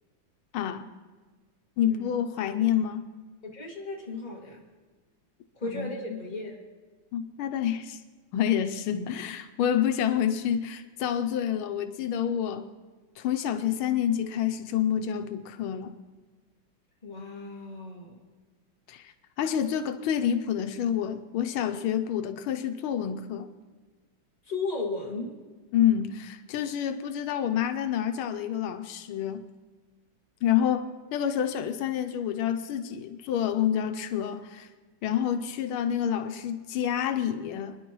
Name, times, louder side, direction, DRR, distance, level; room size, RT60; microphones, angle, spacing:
voice 1, 0.5-0.8 1.8-3.1 5.7-6.2 7.1-8.0 8.3-12.6 13.2-15.9 18.9-23.5 25.7-29.5 30.4-34.7 35.0-37.8, left 9 dB, 90° left, 8 dB, 1.6 m, -28 dB
voice 2, 3.4-4.7 5.5-6.6 17.0-18.2 24.5-25.4, left 3 dB, 20° left, -2 dB, 2.1 m, -35 dB
25.5 x 10.5 x 3.0 m, 1.4 s
omnidirectional pair, 2.3 m